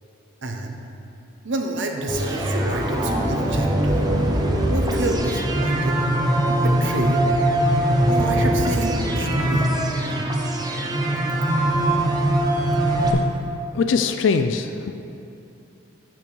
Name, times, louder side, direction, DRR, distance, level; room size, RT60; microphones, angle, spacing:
voice 1, 0.4-0.8 1.4-4.1 4.7-6.0 6.5-7.2 8.1-9.7, right 2 dB, 65° right, 3 dB, 0.8 m, -28 dB
sound 1, 2.1-13.1, right 1 dB, 20° right, 0.6 m, -21 dB
voice 2, 13.7-14.9, left 5 dB, 65° left, 8 dB, 0.3 m, -22 dB
6.8 x 6.0 x 6.1 m, 2.7 s
head